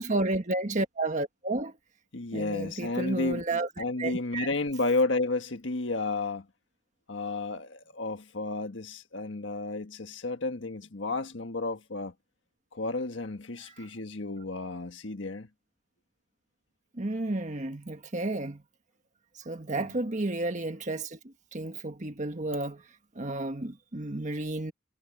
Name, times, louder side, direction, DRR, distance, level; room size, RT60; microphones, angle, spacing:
voice 1, 0.0-1.7 2.3-3.7 4.0-4.5 13.6-13.9 16.9-18.6 19.3-22.8 23.1-24.7, right 2 dB, 40° right, 1.5 m, -32 dB
voice 2, 2.1-3.4 3.8-6.5 7.1-12.1 12.7-15.5, left 3 dB, 75° left, 1.5 m, -32 dB
head